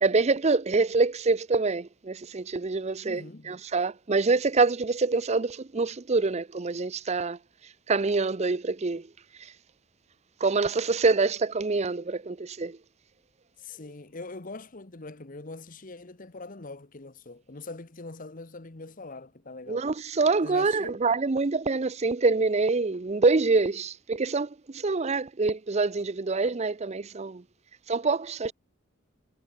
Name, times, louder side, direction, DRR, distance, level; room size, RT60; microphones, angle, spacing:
voice 1, 0.0-7.4 7.9-9.1 9.4-9.5 10.4-12.8 19.7-27.4 27.9-28.5, right 3 dB, 30° right, 0.5 m, -26 dB
voice 2, 3.0-3.6 13.6-19.9 20.4-21.0, left 3 dB, 40° left, 1.2 m, -42 dB
head